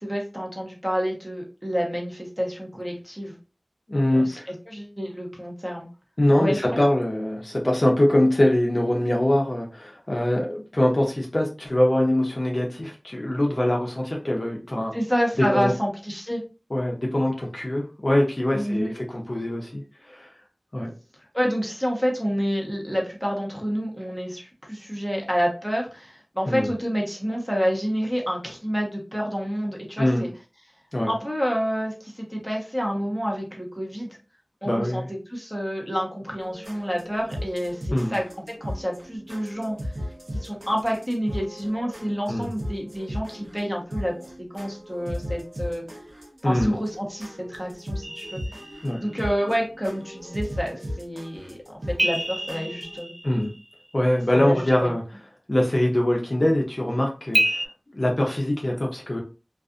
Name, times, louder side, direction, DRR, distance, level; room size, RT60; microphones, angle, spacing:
voice 1, 0.0-3.4 4.1-4.4 4.7-5.9 6.4-6.8 14.9-16.4 18.5-18.9 21.3-30.3 31.1-34.2 34.6-35.0 35.3-39.8 40.3-45.8 46.4-48.4 49.0-51.6 51.9-53.1 54.3-54.9, equal, ahead, -2 dB, 0.9 m, -28 dB
voice 2, 3.9-4.5 6.2-14.9 15.4-15.7 16.7-20.3 20.7-20.9 26.4-26.7 30.0-30.2 30.9-31.1 34.6-35.1 37.9-38.1 42.3-42.5 46.4-46.8 48.8-49.0 52.6-52.7 53.2-53.5 53.9-55.0 55.5-57.7 57.9-59.2, left 1 dB, 45° left, -1 dB, 0.6 m, -23 dB
sound 1, 36.4-53.0, equal, 65° right, 0.8 m, -37 dB
sound 2, 48.0-49.3 52.0-54.0 57.3-57.7, equal, 30° right, 0.4 m, -28 dB
2.4 x 2.4 x 2.4 m, 0.33 s
wide cardioid pair, 40°, 0 cm